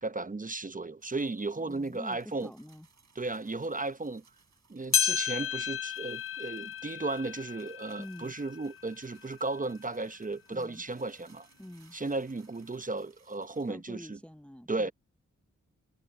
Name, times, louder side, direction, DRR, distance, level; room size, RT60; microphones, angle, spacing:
voice 1, 0.0-2.5 3.1-4.2 4.7-11.5 11.9-14.2 14.7-14.9, right 3 dB, 25° right, 0.8 m, -35 dB
sound 1, 1.0-13.7, right 5 dB, 65° right, 5.7 m, -65 dB
voice 2, 1.6-2.9 8.0-8.3 10.5-10.8 11.6-12.0 13.7-14.9, left 1 dB, 5° left, 0.6 m, -46 dB
sound 2, 4.9-9.6 10.1-10.2 11.0-11.1 12.0-12.1, left 7 dB, 45° left, 0.6 m, -33 dB
cardioid pair, 50°, 29 cm